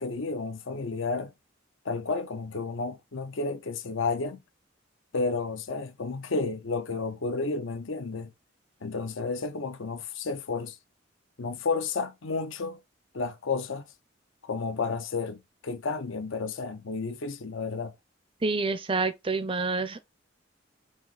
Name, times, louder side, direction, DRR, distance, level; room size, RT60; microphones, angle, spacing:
voice 1, 0.0-1.3 1.8-4.4 5.1-8.3 8.8-10.8 11.4-12.8 13.1-13.9 14.4-17.9, left 4 dB, 70° left, 0.7 m, -31 dB
voice 2, 18.4-20.0, right 3 dB, 25° right, 0.5 m, -28 dB
4.8 x 2.8 x 4.0 m
head